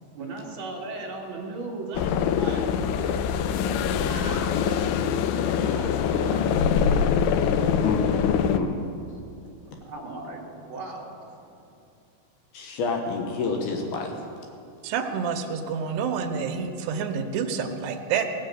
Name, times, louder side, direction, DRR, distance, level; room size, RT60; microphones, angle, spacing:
voice 1, 0.1-3.2 3.7-6.6 6.9-7.1 9.4-11.4, right 2 dB, 40° right, -3 dB, 1.8 m, -37 dB
sound 1, 1.9-8.6, left 7 dB, 90° left, 2.4 m, -24 dB
voice 2, 7.8-8.8 12.5-14.1, left 4 dB, 70° left, 2 dB, 2.6 m, -28 dB
voice 3, 14.8-18.3, right 6 dB, 75° right, 3 dB, 2.8 m, -28 dB
18.0 x 7.6 x 7.8 m, 2.6 s
omnidirectional pair, 5.3 m